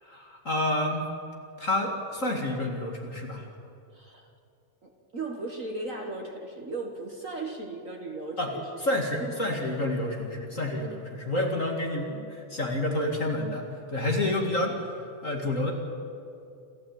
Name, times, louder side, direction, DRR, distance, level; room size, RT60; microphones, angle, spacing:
voice 1, 0.0-1.1 1.6-3.5 8.4-8.5 8.8-14.9 15.2-15.7, left 1 dB, 30° left, 1 dB, 1.8 m, -29 dB
voice 2, 3.9-4.3 4.8-8.7, right 2 dB, 55° right, 2 dB, 0.9 m, -36 dB
28.5 x 12.5 x 8.8 m, 2.6 s
omnidirectional pair, 3.9 m